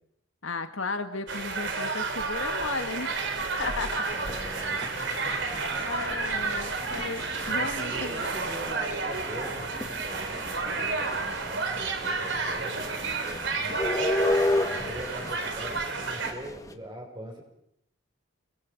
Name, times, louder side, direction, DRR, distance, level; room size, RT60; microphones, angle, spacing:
voice 1, 0.4-3.2 3.6-4.1 5.8-8.3, left 3 dB, 70° left, 7 dB, 1.8 m, -34 dB
sound 1, 1.3-16.3, right 4 dB, 60° right, 3.4 m, -31 dB
sound 2, 2.2-16.7, left 1 dB, 15° left, 1.4 m, -34 dB
voice 2, 4.1-4.8 7.4-13.9 14.5-17.4, equal, 25° right, 1 dB, 6.4 m, -42 dB
29.5 x 22.0 x 5.3 m, 0.75 s
head